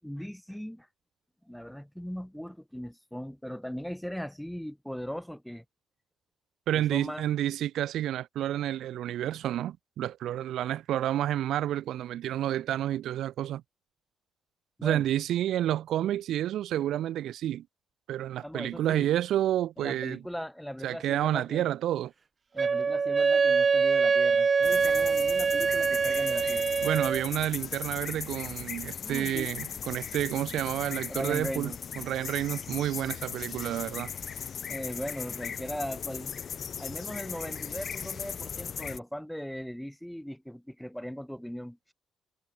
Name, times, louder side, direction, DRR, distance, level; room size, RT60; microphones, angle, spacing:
voice 1, 0.0-0.9 1.4-5.6 6.7-7.3 14.8-15.1 18.4-19.1 19.8-21.7 22.5-26.7 29.0-29.5 30.8-31.8 34.7-36.4 36.8-41.8, equal, ahead, 6.5 m, -39 dB
voice 2, 6.7-13.6 14.8-17.6 18.1-20.2 20.8-22.1 26.8-34.1, right 12 dB, 80° right, 1.6 m, -30 dB
Wind instrument woodwind instrument, 22.6-27.2, right 5 dB, 40° right, 1.2 m, -24 dB
sound 1, 24.6-39.0, left 7 dB, 50° left, 1.7 m, -38 dB
cardioid pair, 90°, 0 cm